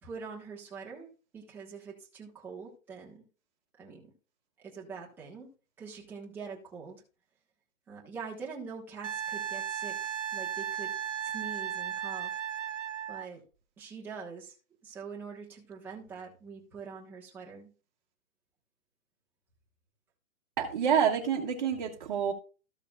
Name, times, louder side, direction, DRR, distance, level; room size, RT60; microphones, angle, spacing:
voice 1, 0.0-3.2 3.8-4.1 4.6-5.5 5.8-7.0 7.9-10.9 11.2-12.4 13.1-13.4 13.8-14.5 14.8-17.7, right 5 dB, 5° right, -3 dB, 1.1 m, -44 dB
Wind instrument woodwind instrument, 9.0-13.3 16.0-16.1, right 9 dB, 60° right, 0.7 m, -35 dB
voice 2, 20.6-22.3, right 8 dB, 35° right, 0 dB, 1.3 m, -27 dB
14.5 x 6.7 x 2.4 m, 0.35 s
hypercardioid pair, 170°, 42 cm